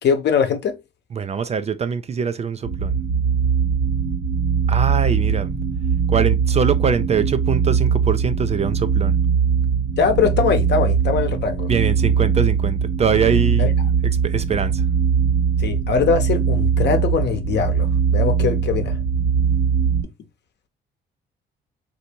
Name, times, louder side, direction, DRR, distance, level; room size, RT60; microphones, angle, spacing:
voice 1, 0.0-0.8 10.0-11.7 13.6-13.7 15.6-19.0, left 6 dB, 60° left, 0.8 m, -21 dB
voice 2, 1.1-2.9 4.7-5.5 6.1-9.1 11.7-13.7 14.2-14.8, right 6 dB, 35° right, 0.4 m, -23 dB
sound 1, 2.6-20.0, right 6 dB, 75° right, 1.2 m, -20 dB
3.3 x 2.7 x 2.8 m
cardioid pair, 90°, 20 cm